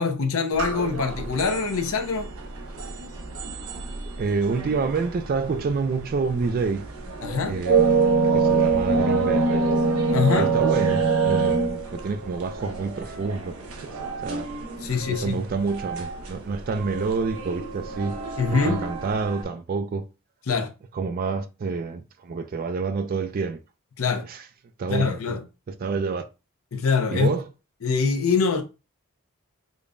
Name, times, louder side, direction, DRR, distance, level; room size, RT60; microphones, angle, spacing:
voice 1, 0.0-2.3 7.2-7.6 10.1-10.5 14.8-15.4 18.4-18.8 20.5-20.7 24.0-24.2 24.9-25.4 26.7-27.4 27.8-28.6, left 5 dB, 70° left, 0.7 m, -24 dB
sound 1, 0.5-19.4, right 4 dB, 85° right, 0.7 m, -26 dB
voice 2, 4.2-6.9 7.5-9.7 10.4-13.9 14.2-14.5 15.1-18.2 18.5-20.1 20.9-23.6 24.3-24.4 24.8-25.4 25.7-26.2 27.1-27.4, right 4 dB, 40° right, 0.3 m, -28 dB
5.1 x 2.1 x 2.5 m
head